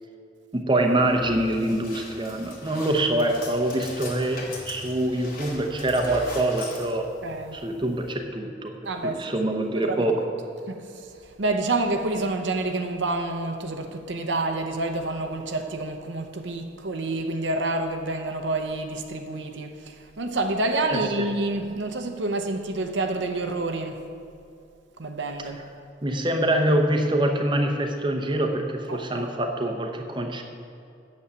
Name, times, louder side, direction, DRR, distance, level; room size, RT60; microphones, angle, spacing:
voice 1, 0.5-7.1 7.5-8.7 9.0-10.2 20.9-21.0 26.0-30.4, right 1 dB, 25° right, 3 dB, 0.8 m, -25 dB
sound 1, 0.8-8.1, left 2 dB, 50° left, 2.0 m, -41 dB
voice 2, 7.2-7.6 8.8-9.2 9.8-10.1 10.7-11.1 11.4-24.0 25.0-25.6 28.9-29.3, right 2 dB, 75° right, 5 dB, 0.8 m, -28 dB
8.6 x 7.3 x 8.1 m, 2.5 s
head